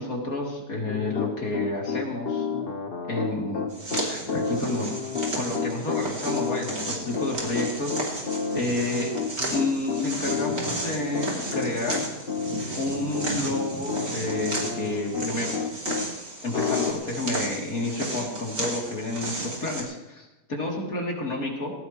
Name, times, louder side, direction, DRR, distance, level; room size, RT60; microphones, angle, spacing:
voice 1, 0.0-2.5 3.1-4.9 5.4-8.2 8.5-9.2 9.5-12.1 12.8-15.5 16.4-21.7, left 2 dB, 55° left, -2 dB, 3.8 m, -30 dB
Piano, 0.9-16.1 16.5-16.9, left 5 dB, 40° left, 1.2 m, -30 dB
sound 1, 3.7-19.8, right 2 dB, 60° right, 3.7 m, -34 dB
19.0 x 18.0 x 3.2 m, 1.0 s
omnidirectional pair, 1.7 m